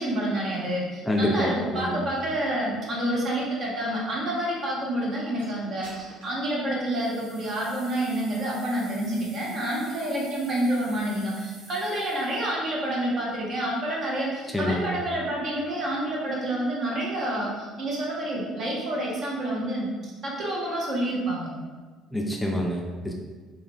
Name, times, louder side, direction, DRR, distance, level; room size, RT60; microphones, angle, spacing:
voice 1, 0.0-21.5, right 1 dB, 50° right, -3 dB, 1.0 m, -28 dB
voice 2, 1.1-2.0 14.5-14.9 22.1-23.1, left 1 dB, 10° left, 0 dB, 0.4 m, -27 dB
sound 1, 5.4-5.5 5.8-6.4 6.9-12.5, right 2 dB, 85° right, 0.7 m, -48 dB
3.5 x 2.2 x 3.4 m, 1.4 s
figure-of-eight pair, 55°, 0 cm